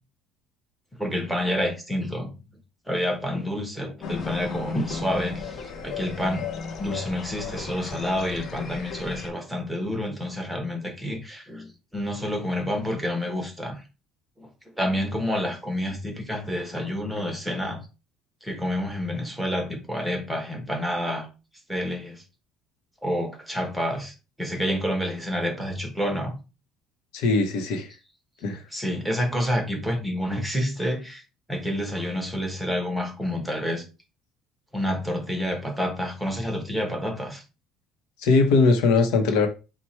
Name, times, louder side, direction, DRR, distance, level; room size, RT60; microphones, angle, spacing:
voice 1, 1.0-2.3 2.9-6.5 6.8-13.8 14.4-14.5 14.8-17.8 18.4-21.3 21.7-22.2 23.0-26.3 28.7-31.2 31.5-33.8 34.7-37.4, equal, ahead, 1.0 m, -28 dB
sound 1, 4.0-9.3, left 5 dB, 45° left, 0.6 m, -35 dB
voice 2, 27.1-27.9 28.4-28.6 38.2-39.5, left 3 dB, 75° left, 0.7 m, -20 dB
4.4 x 2.1 x 4.3 m
cardioid pair, 145°, 0 cm